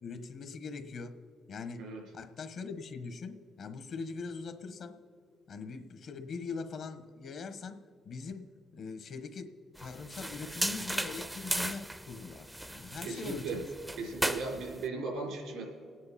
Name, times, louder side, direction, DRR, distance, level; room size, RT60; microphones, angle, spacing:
voice 1, 0.0-1.2 1.5-1.8 2.1-5.0 5.5-9.5 9.8-13.6, left 4 dB, 65° left, 10 dB, 1.2 m, -42 dB
sound 1, 9.8-14.9, right 1 dB, 5° right, 0.5 m, -36 dB
voice 2, 13.0-13.6 14.0-15.6, right 3 dB, 90° right, 0 dB, 3.7 m, -37 dB
28.5 x 9.6 x 4.2 m, 2.3 s
cardioid pair, 90°, 0 cm